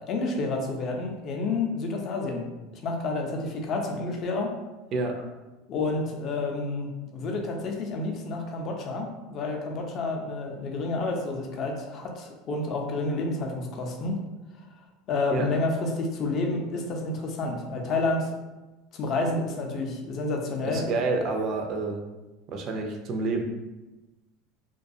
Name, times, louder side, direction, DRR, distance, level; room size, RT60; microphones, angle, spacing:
voice 1, 0.0-2.5 2.8-4.5 5.7-14.2 15.1-18.3 18.9-20.9, left 3 dB, 40° left, 1 dB, 0.4 m, -29 dB
voice 2, 4.9-5.3 15.3-15.5 20.6-22.0 22.5-23.4, right 3 dB, 40° right, 2 dB, 0.3 m, -28 dB
2.3 x 2.3 x 2.6 m, 1.1 s
supercardioid pair, 135°, 0 cm